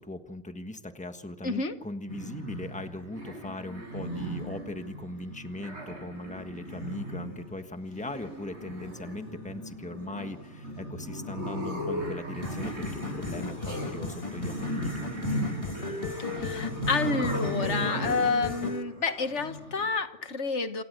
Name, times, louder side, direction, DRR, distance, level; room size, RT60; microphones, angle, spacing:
voice 1, 0.0-15.4, left 1 dB, 5° left, 7 dB, 1.4 m, -39 dB
voice 2, 1.4-1.7 16.4-20.8, left 4 dB, 80° left, 10 dB, 1.7 m, -29 dB
sound 1, 2.1-19.9, equal, 70° right, 8.5 m, -36 dB
sound 2, 12.4-18.8, left 3 dB, 30° left, 1.5 m, -37 dB
28.0 x 17.5 x 8.1 m, 1.1 s
omnidirectional pair, 1.2 m